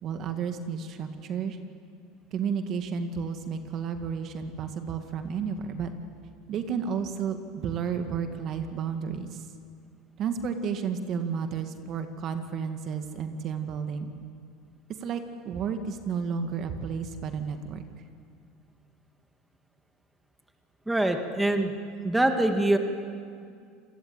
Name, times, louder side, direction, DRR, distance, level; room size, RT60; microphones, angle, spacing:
voice 1, 0.0-1.6 2.3-5.9 6.5-9.4 10.2-14.1 15.0-17.8, right 6 dB, 45° right, 7 dB, 2.0 m, -32 dB
voice 2, 20.9-21.7 22.0-22.8, right 1 dB, 5° right, 5 dB, 2.2 m, -24 dB
27.5 x 20.0 x 9.0 m, 2.3 s
supercardioid pair, 115°, 0 cm